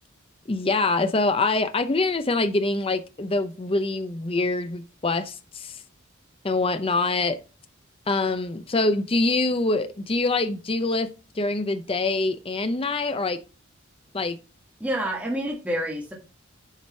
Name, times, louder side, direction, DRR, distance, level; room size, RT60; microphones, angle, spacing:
voice 1, 0.5-5.8 6.4-7.4 8.1-11.1 11.4-13.4 14.1-14.4, left 3 dB, 25° left, 0.6 m, -25 dB
voice 2, 14.8-16.1, equal, 5° right, 1.5 m, -28 dB
7.3 x 5.0 x 5.4 m
head